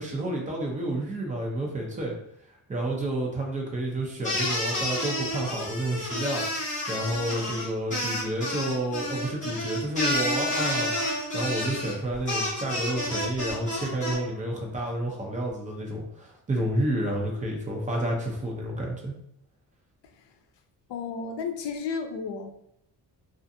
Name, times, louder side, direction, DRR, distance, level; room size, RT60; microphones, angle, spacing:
voice 1, 0.0-2.1 2.7-10.9 11.3-19.1, right 1 dB, 20° right, -1 dB, 0.5 m, -30 dB
sound 1, 4.2-14.1, left 1 dB, 15° left, 1.0 m, -30 dB
voice 2, 20.9-22.5, left 5 dB, 75° left, 5 dB, 0.5 m, -32 dB
2.4 x 2.4 x 2.6 m, 0.74 s
wide cardioid pair, 160°, 43 cm